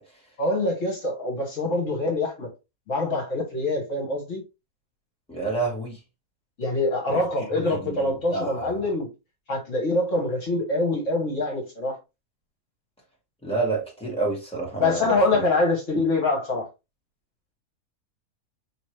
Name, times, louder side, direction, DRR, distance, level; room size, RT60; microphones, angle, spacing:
voice 1, 0.4-2.5 2.9-4.4 6.6-9.1 9.5-12.0 14.8-16.7, left 2 dB, 55° left, 1.7 m, -25 dB
voice 2, 5.3-6.0 7.1-7.2 7.7-8.8 13.4-15.4, right 3 dB, 5° left, 1.9 m, -29 dB
5.2 x 3.0 x 3.2 m
omnidirectional pair, 1.6 m